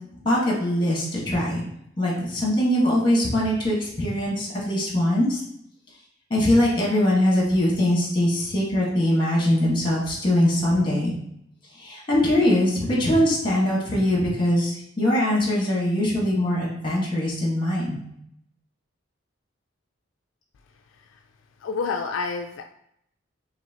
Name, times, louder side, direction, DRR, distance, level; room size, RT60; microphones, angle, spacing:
voice 1, 0.2-1.6 2.0-5.4 6.3-11.1 11.7-18.0, left 1 dB, 25° left, -3 dB, 1.4 m, -22 dB
voice 2, 20.7-21.2 21.6-22.6, left 4 dB, 75° left, 4 dB, 0.3 m, -30 dB
5.9 x 2.6 x 2.9 m, 0.73 s
head